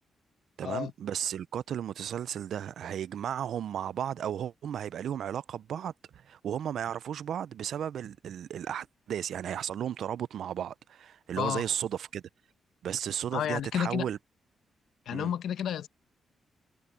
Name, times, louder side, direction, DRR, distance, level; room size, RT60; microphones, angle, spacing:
voice 1, 0.6-12.2 12.8-14.2 15.1-15.3, right 9 dB, 65° right, 0.4 m, -34 dB
voice 2, 13.3-14.1 15.1-15.9, left 9 dB, 85° left, 0.8 m, -31 dB
wide cardioid pair, 165°, 0 cm